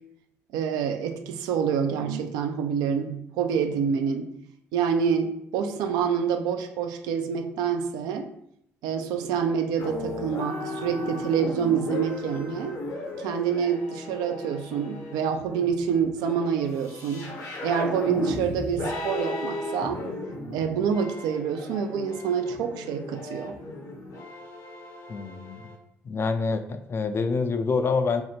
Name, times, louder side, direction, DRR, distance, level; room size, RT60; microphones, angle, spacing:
voice 1, 0.5-4.3 4.7-8.3 8.8-12.8 13.2-17.3 17.6-20.0 20.5-23.5, right 7 dB, 70° right, 6 dB, 0.4 m, -27 dB
sound 1, 9.8-25.8, left 2 dB, 55° left, 0.7 m, -36 dB
voice 2, 25.1-25.7 26.0-28.2, left 4 dB, 35° left, 8 dB, 0.3 m, -26 dB
3.3 x 2.0 x 2.8 m, 0.73 s
hypercardioid pair, 55°, 7 cm